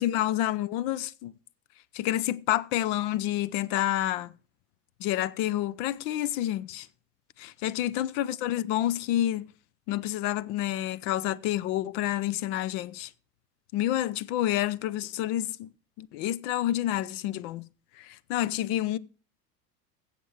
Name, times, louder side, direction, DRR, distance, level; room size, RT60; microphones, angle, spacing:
voice 1, 0.0-1.3 1.9-4.3 5.0-6.9 7.4-9.5 9.9-13.1 13.7-15.7 16.0-17.7 18.0-19.0, left 13 dB, 45° left, 0.6 m, -29 dB
15.5 x 7.4 x 4.7 m
hypercardioid pair, 80°, 49 cm